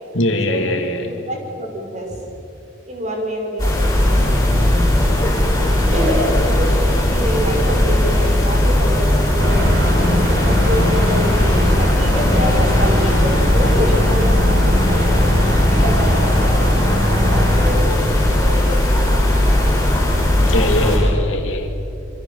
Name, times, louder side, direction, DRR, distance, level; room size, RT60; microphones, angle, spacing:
voice 1, 0.1-1.1 20.5-21.7, left 1 dB, 80° left, 4 dB, 2.8 m, -21 dB
voice 2, 1.0-2.2 2.9-4.4 5.9-9.6 10.3-15.3 15.7-16.8 17.2-17.8 18.4-19.9, equal, 35° right, 0 dB, 5.9 m, -26 dB
sound 1, 3.6-21.0, left 1 dB, 15° left, 7.7 m, -17 dB
sound 2, 9.4-17.7, left 1 dB, 65° right, 4.9 m, -21 dB
26.5 x 26.0 x 7.3 m, 2.7 s
head